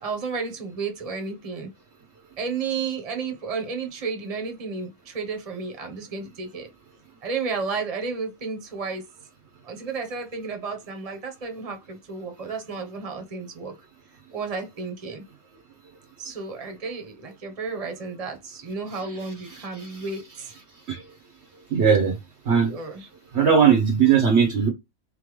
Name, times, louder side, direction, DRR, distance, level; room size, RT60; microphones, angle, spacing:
voice 1, 0.0-1.7 2.4-6.7 7.2-9.0 9.6-13.7 14.3-15.2 16.2-20.5 22.6-23.1, right 4 dB, 25° right, 1.1 m, -32 dB
voice 2, 21.7-22.1 22.5-22.7 23.3-24.7, right 7 dB, 55° right, 1.1 m, -18 dB
4.3 x 3.7 x 3.2 m
omnidirectional pair, 1.5 m